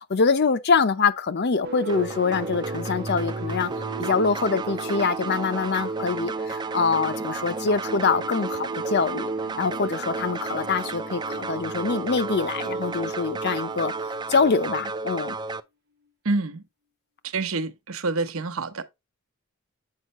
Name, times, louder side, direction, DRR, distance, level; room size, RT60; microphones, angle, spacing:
voice 1, 0.1-3.7 4.0-9.3 9.6-13.9 14.3-15.3, left 5 dB, 50° left, 0.6 m, -24 dB
sound 1, 1.6-15.0, right 2 dB, 50° right, 1.1 m, -40 dB
sound 2, 1.9-15.6, right 4 dB, 20° right, 0.4 m, -32 dB
voice 2, 16.2-16.6 17.3-18.8, right 3 dB, 70° right, 0.9 m, -27 dB
7.5 x 5.4 x 3.0 m
head